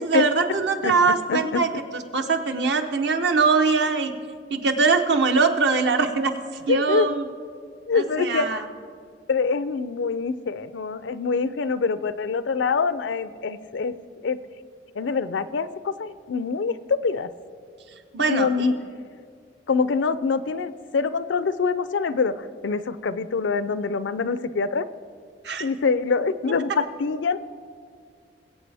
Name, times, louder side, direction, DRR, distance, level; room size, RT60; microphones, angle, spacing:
voice 1, 0.0-4.1 4.5-7.2 7.9-8.6 18.1-18.7 25.4-25.7, right 4 dB, 65° right, 6 dB, 0.9 m, -22 dB
voice 2, 1.3-1.6 6.7-7.1 7.9-8.6 9.3-13.9 14.2-14.4 15.0-17.3 18.3-18.7 19.7-24.9 25.6-27.4, left 5 dB, 85° left, 15 dB, 0.5 m, -25 dB
21.0 x 8.1 x 3.4 m, 2.2 s
head